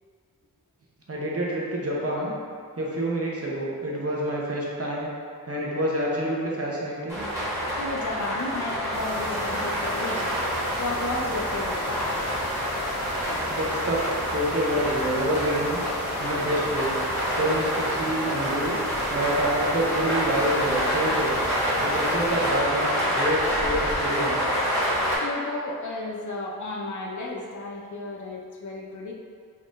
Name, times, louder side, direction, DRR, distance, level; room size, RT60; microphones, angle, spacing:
voice 1, 1.1-2.3 2.8-5.1 5.5-7.3 13.5-14.0 14.3-15.8 16.2-17.0 17.3-18.8 19.1-21.3 21.8-24.4, right 1 dB, 40° right, -4 dB, 0.8 m, -27 dB
sound 1, 7.1-25.2, equal, 10° right, 1.3 m, -27 dB
voice 2, 7.8-10.4 10.8-12.3 25.2-29.1, left 2 dB, 50° left, -1 dB, 0.6 m, -33 dB
sound 2, 8.9-22.4, equal, 55° right, 1.3 m, -39 dB
4.1 x 3.8 x 2.5 m, 2.1 s
wide cardioid pair, 80°, 38 cm